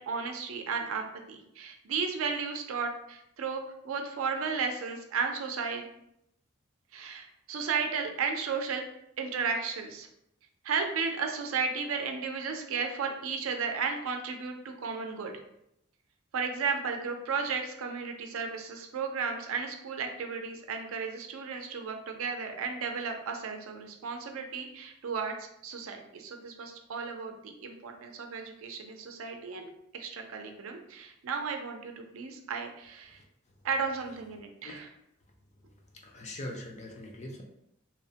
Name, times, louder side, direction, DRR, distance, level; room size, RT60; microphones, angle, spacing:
voice 1, 0.0-5.9 6.9-8.8 9.2-10.1 10.6-15.3 16.3-29.7 29.9-33.2 33.6-34.9, right 5 dB, 75° right, 4 dB, 0.4 m, -34 dB
voice 2, 36.0-37.4, left 1 dB, 30° left, 1 dB, 0.4 m, -41 dB
2.9 x 2.0 x 2.7 m, 0.79 s
head